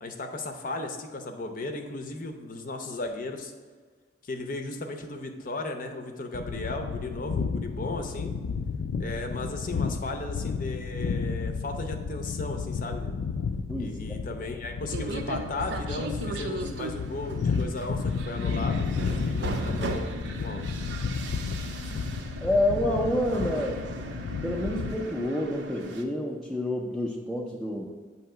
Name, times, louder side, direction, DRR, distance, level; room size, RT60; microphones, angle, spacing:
voice 1, 0.0-3.5 4.2-8.3 9.0-13.2 13.8-20.1 20.4-20.7, left 2 dB, 45° left, 5 dB, 0.6 m, -36 dB
sound 1, 6.3-25.0, left 5 dB, 90° left, 0.4 m, -32 dB
sound 2, 14.9-26.0, right 2 dB, 70° right, 0.6 m, -37 dB
voice 2, 22.4-23.8 24.4-27.9, left 1 dB, ahead, -4 dB, 0.5 m, -28 dB
7.8 x 2.8 x 5.6 m, 1.5 s
head